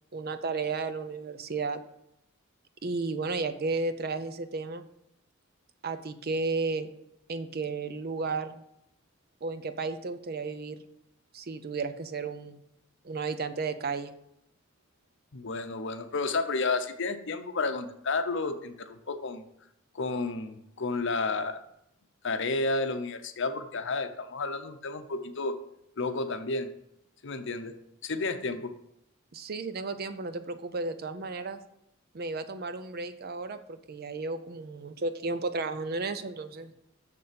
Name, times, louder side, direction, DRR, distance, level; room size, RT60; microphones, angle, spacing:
voice 1, 0.1-1.8 2.8-4.9 5.8-6.9 7.3-8.6 9.4-10.8 11.3-12.6 13.0-14.1 29.3-31.6 32.1-36.7, right 3 dB, 50° right, 11 dB, 0.6 m, -33 dB
voice 2, 15.3-19.4 19.9-21.6 22.2-25.6 26.0-26.7 27.2-27.7 28.0-28.7, left 3 dB, 60° left, 9 dB, 0.8 m, -31 dB
6.8 x 6.8 x 5.1 m, 0.80 s
head